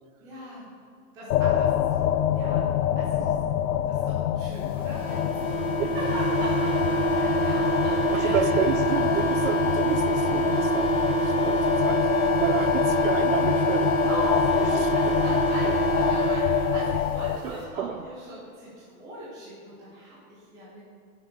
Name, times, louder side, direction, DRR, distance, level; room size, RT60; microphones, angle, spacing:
voice 1, 0.2-0.7 1.1-3.3 3.8-8.6 8.8-9.1 14.0-20.8, right 1 dB, 10° right, -8 dB, 0.9 m, -38 dB
sound 1, 1.3-17.4, left 10 dB, 85° left, 0.7 m, -26 dB
sound 2, 4.9-17.0, right 3 dB, 15° left, 0.6 m, -26 dB
voice 2, 8.1-14.1 14.8-15.2 17.4-18.0, right 10 dB, 65° right, 14 dB, 0.6 m, -31 dB
11.5 x 6.2 x 4.8 m, 2.5 s
supercardioid pair, 180°, 44 cm